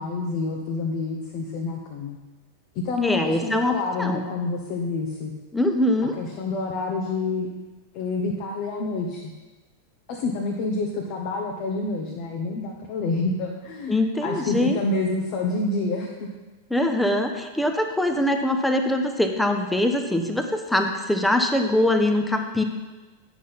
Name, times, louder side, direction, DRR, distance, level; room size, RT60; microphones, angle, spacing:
voice 1, 0.0-2.2 2.7-5.3 6.2-7.5 7.9-9.2 10.1-16.3, left 3 dB, 45° left, 0 dB, 1.2 m, -28 dB
voice 2, 3.0-3.7 4.0-4.2 5.5-6.2 13.9-14.8 16.7-22.6, left 1 dB, 5° left, 5 dB, 0.9 m, -23 dB
9.3 x 6.1 x 5.5 m, 1.2 s
figure-of-eight pair, 90°, 0 cm